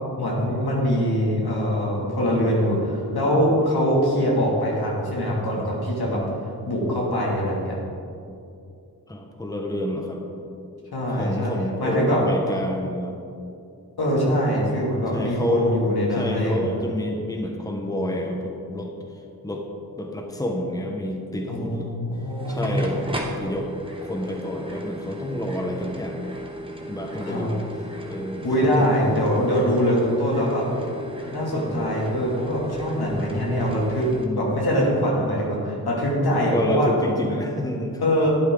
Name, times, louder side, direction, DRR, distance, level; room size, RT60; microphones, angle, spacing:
voice 1, 0.2-6.2 6.6-7.8 10.9-11.5 11.8-12.2 14.0-16.8 21.5-23.0 27.2-27.5 28.4-30.6 31.3-34.1 34.3-36.9 38.0-38.3, equal, 70° left, -4 dB, 2.8 m, -23 dB
voice 2, 9.1-10.2 11.1-13.1 15.1-15.9 16.2-19.7 20.0-21.9 22.5-23.7 24.0-26.3 26.9-27.6 28.1-28.9 34.1-34.5 36.5-38.1, equal, 10° left, 1 dB, 1.3 m, -29 dB
sound 1, 22.1-34.3, equal, 15° right, 1.6 m, -36 dB
11.5 x 9.2 x 4.0 m, 2.6 s
cardioid pair, 65°, 39 cm